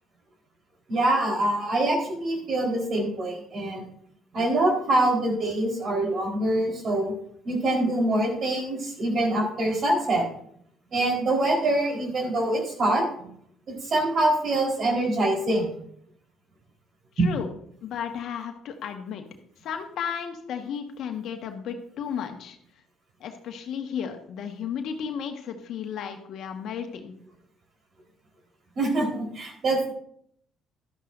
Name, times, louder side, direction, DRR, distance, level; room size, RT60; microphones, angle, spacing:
voice 1, 0.9-3.8 4.3-7.1 7.4-10.2 10.9-13.3 13.7-15.7 17.2-17.3 28.8-29.9, right 1 dB, 50° right, 0 dB, 4.2 m, -24 dB
voice 2, 17.2-17.5 17.8-19.2 19.6-22.6 23.2-27.1, left 7 dB, 70° left, 5 dB, 1.5 m, -34 dB
12.5 x 11.5 x 2.6 m, 0.67 s
supercardioid pair, 70°, 0 cm